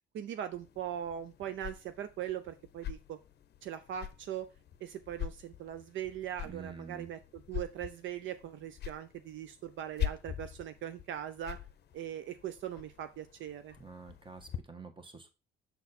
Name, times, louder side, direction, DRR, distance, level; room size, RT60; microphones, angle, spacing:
voice 1, 0.1-3.2 3.6-4.5 4.8-11.6 11.9-13.7, right 10 dB, 70° right, 10 dB, 0.5 m, -40 dB
sound 1, 0.5-14.6, left 11 dB, 55° left, 0.6 m, -44 dB
voice 2, 6.4-7.1 13.8-15.3, right 5 dB, 25° right, 6 dB, 1.3 m, -48 dB
6.8 x 4.2 x 4.1 m, 0.29 s
cardioid pair, 90°, 20 cm